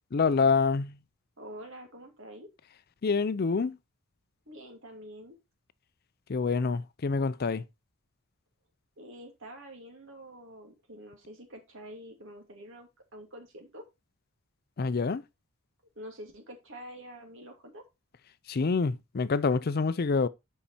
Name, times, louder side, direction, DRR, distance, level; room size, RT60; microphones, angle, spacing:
voice 1, 0.1-1.0 3.0-3.8 6.3-7.6 14.8-15.2 18.5-20.3, left 4 dB, 45° left, 0.4 m, -26 dB
voice 2, 1.4-2.5 4.5-5.4 9.0-13.8 15.9-17.8, equal, 60° right, 2.8 m, -47 dB
8.5 x 5.5 x 4.2 m
head